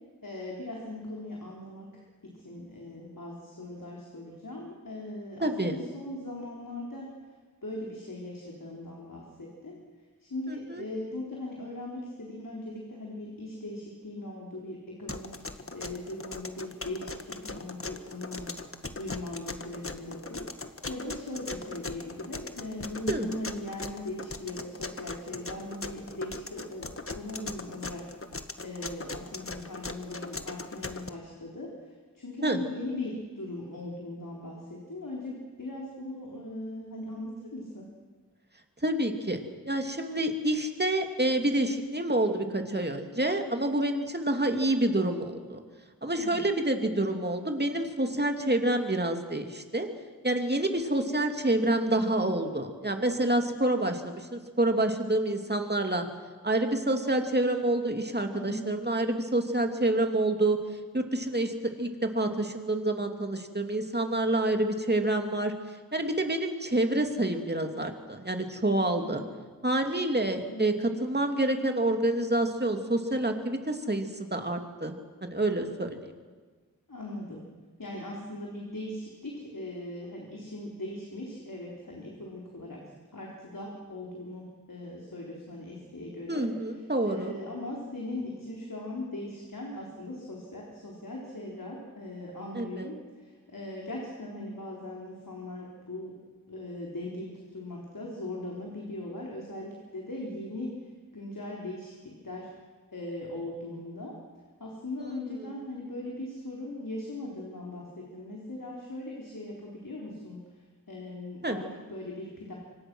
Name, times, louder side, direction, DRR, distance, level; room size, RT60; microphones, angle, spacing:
voice 1, 0.2-7.1 7.6-9.8 10.2-18.5 19.0-20.4 20.9-37.9 46.2-46.4 58.3-58.8 69.0-69.1 70.5-70.7 76.9-77.4 77.8-82.8 83.1-96.2 96.5-102.5 102.9-104.2 104.6-112.5, left 1 dB, 70° left, -2 dB, 4.1 m, -39 dB
voice 2, 5.4-5.8 10.5-10.8 23.1-23.3 32.4-32.6 38.8-39.4 39.6-45.6 46.0-49.9 50.2-56.1 56.4-60.6 60.9-65.5 65.9-69.2 69.6-74.9 75.2-76.1 86.3-87.3 92.5-93.0 105.0-105.2 111.4-111.6, right 1 dB, 30° right, 5 dB, 2.7 m, -28 dB
sound 1, 15.1-31.1, left 3 dB, 40° left, 1.4 m, -39 dB
26.5 x 24.5 x 6.3 m, 1.4 s
wide cardioid pair, 55°, 34 cm